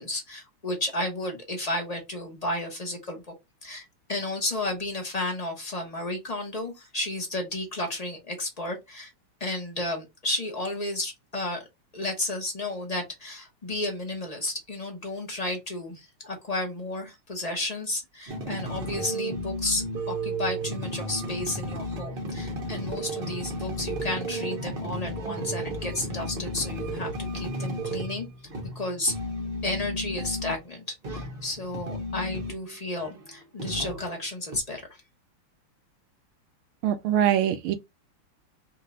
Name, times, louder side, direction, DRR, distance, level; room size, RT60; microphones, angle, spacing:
voice 1, 0.0-3.3 3.6-9.1 9.4-11.6 11.9-28.3 28.7-29.1 29.6-35.0, left 2 dB, 45° left, 0.4 m, -32 dB
sound 1, 18.3-30.6 31.0-32.7 33.0-34.1 34.5-34.6, right 1 dB, 45° right, 0.7 m, -33 dB
voice 2, 36.8-37.8, right 10 dB, 80° right, 1.5 m, -23 dB
4.4 x 2.3 x 3.9 m
omnidirectional pair, 2.4 m